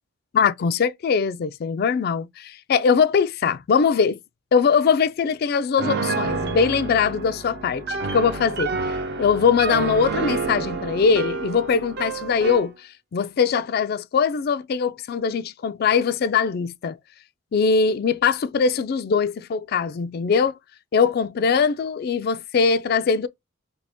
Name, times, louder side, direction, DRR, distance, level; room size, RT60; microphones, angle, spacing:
voice 1, 0.3-4.2 4.5-7.8 8.1-12.7 13.1-17.0 17.5-20.6 20.9-23.3, left 5 dB, 50° left, 0.3 m, -21 dB
Piano, 5.8-12.7, right 4 dB, 55° right, 0.6 m, -29 dB
2.8 x 2.6 x 3.4 m
head